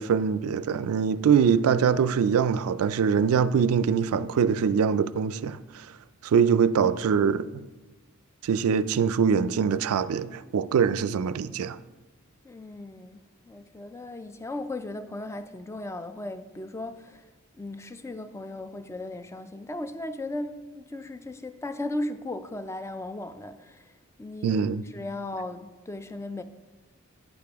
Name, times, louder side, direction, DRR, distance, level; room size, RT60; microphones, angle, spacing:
voice 1, 0.0-5.9 6.2-7.5 8.4-11.8 24.4-24.8, right 6 dB, 75° right, 0.3 m, -23 dB
voice 2, 12.4-17.3 17.6-26.4, left 2 dB, 10° left, 0.3 m, -37 dB
9.4 x 6.8 x 3.5 m
head